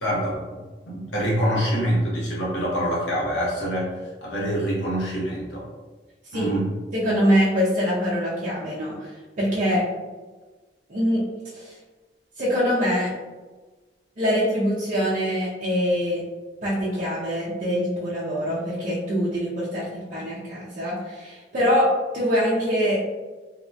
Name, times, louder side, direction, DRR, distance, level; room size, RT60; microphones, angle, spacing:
voice 1, 0.0-5.7 6.3-6.7, equal, 80° left, -5 dB, 0.9 m, -26 dB
voice 2, 6.9-9.8 10.9-11.2 11.5-11.7 12.4-13.1 14.2-16.2 16.6-23.0, equal, 45° right, -8 dB, 0.5 m, -24 dB
2.7 x 2.2 x 2.6 m, 1.3 s
head